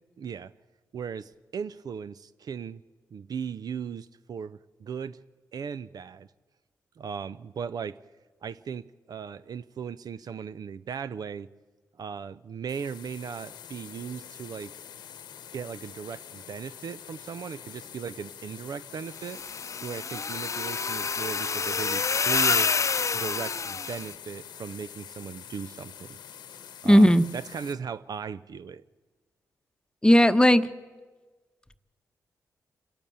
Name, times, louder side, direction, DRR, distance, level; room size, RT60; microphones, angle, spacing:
voice 1, 0.2-0.5 0.9-2.8 3.1-5.2 5.5-6.3 7.0-8.0 8.4-11.5 12.0-14.7 15.5-19.4 19.8-22.7 23.1-26.2 26.8-28.8, right 7 dB, 65° right, 15 dB, 0.5 m, -37 dB
sound 1, 12.7-27.7, left 9 dB, 90° left, 1.1 m, -46 dB
sound 2, 19.2-24.1, left 5 dB, 45° left, 0.7 m, -28 dB
voice 2, 26.8-27.2 30.0-30.7, equal, 10° left, 11 dB, 1.0 m, -16 dB
27.0 x 12.0 x 8.7 m, 1.3 s
supercardioid pair, 50°, 7 cm